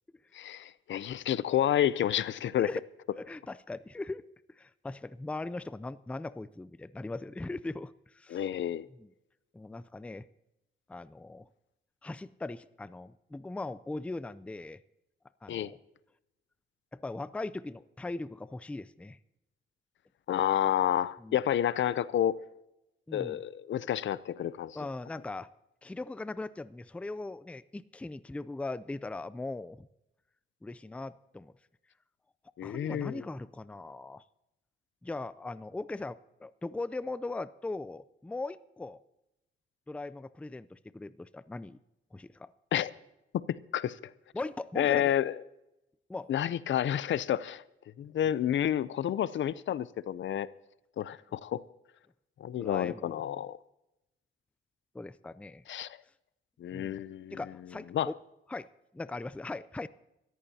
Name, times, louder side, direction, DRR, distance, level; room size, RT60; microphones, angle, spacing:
voice 1, 0.3-2.7 8.3-8.8 15.5-15.7 20.3-22.4 23.1-24.8 32.6-33.2 42.7-42.9 43.7-44.0 44.8-45.3 46.3-47.6 48.0-50.5 51.0-51.6 52.4-53.6 55.7-56.0 56.6-57.4 57.9-58.1, left 10 dB, 70° left, 0.5 m, -29 dB
voice 2, 3.2-4.2 4.5-8.5 8.9-9.1 9.5-10.3 10.9-11.5 12.0-14.8 15.4-15.8 16.9-19.2 21.2-21.4 23.1-23.4 24.7-25.5 25.8-29.9 30.6-31.5 32.6-34.2 35.0-39.0 39.9-41.8 42.1-42.5 44.3-45.1 46.1-46.3 52.6-53.2 54.9-55.6 56.7-57.0 57.3-58.2 58.5-59.9, left 2 dB, 5° left, 0.4 m, -39 dB
24.5 x 14.0 x 2.8 m
cardioid pair, 115°, 20 cm